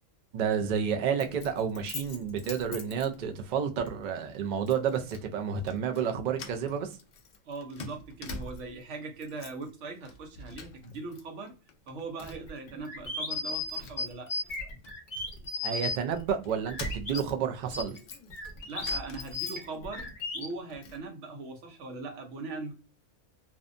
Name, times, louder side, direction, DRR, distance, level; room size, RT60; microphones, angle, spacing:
voice 1, 0.3-6.9 15.6-18.0, right 7 dB, 85° right, 0.4 m, -30 dB
Keys jangling, 1.2-3.5 3.9-4.1 4.7-5.3 5.6-6.1 6.3-8.8 9.1-9.7 10.0-11.2 11.5-12.6 13.1-13.2 13.5-15.8 16.4-20.0 20.3-21.0, left 2 dB, 85° left, 0.4 m, -45 dB
voice 2, 7.5-11.6 11.9-14.3 18.7-22.7, right 3 dB, 70° right, 1.0 m, -40 dB
sound 1, 12.3-17.2 17.7-20.5, left 3 dB, 45° left, 0.9 m, -35 dB
2.6 x 2.1 x 2.5 m
omnidirectional pair, 1.3 m